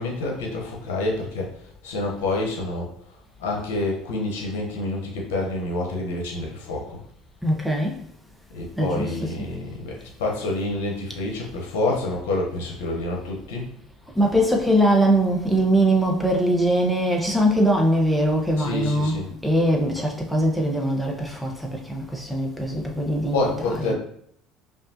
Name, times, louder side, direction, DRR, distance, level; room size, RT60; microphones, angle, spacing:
voice 1, 0.0-1.5 1.8-2.9 3.4-7.0 8.5-13.7 18.6-19.3 23.3-23.9, left 2 dB, 75° left, -1 dB, 0.9 m, -27 dB
voice 2, 7.4-8.0 8.8-9.3 14.1-23.9, right 1 dB, 5° left, -1 dB, 0.9 m, -22 dB
5.2 x 2.5 x 2.8 m, 0.67 s
hypercardioid pair, 70°, 0 cm